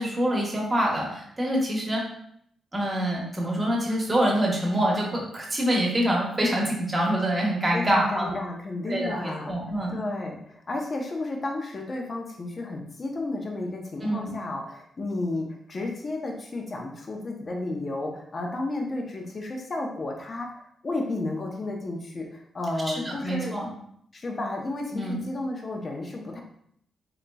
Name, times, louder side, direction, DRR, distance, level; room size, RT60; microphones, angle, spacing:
voice 1, 0.0-2.0 2.7-8.3 8.9-10.0 14.0-14.3 22.9-23.7 24.9-25.2, right 1 dB, 25° right, -2 dB, 1.1 m, -26 dB
voice 2, 7.7-9.5 9.9-23.6 24.1-26.4, left 2 dB, 40° left, 1 dB, 0.7 m, -32 dB
3.9 x 2.9 x 2.3 m, 0.69 s
cardioid pair, 85°, 0 cm